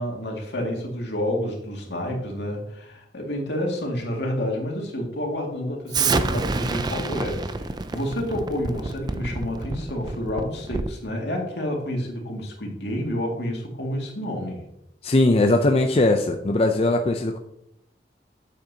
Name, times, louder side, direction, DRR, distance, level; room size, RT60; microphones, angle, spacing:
voice 1, 0.0-14.6, equal, 80° left, 0 dB, 2.2 m, -29 dB
Explosion, 5.9-11.0, right 3 dB, 25° right, 0.4 m, -28 dB
voice 2, 15.0-17.4, left 2 dB, 35° left, 5 dB, 0.5 m, -20 dB
8.8 x 7.6 x 2.8 m, 0.77 s
head